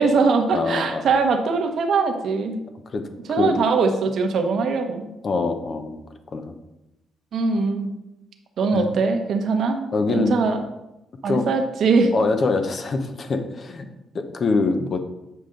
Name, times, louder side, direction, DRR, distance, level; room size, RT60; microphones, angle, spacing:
voice 1, 0.0-2.6 3.2-5.1 7.3-7.9 8.6-10.6 11.2-12.1, right 4 dB, 65° right, 5 dB, 1.0 m, -21 dB
voice 2, 0.5-1.0 2.9-3.0 3.4-3.6 5.2-6.0 6.3-6.5 8.7-8.9 9.9-10.4 11.2-11.5 12.1-13.9 14.1-15.0, left 3 dB, 45° left, 7 dB, 0.8 m, -24 dB
7.9 x 5.1 x 3.9 m, 0.93 s
cardioid pair, 90°, 0 cm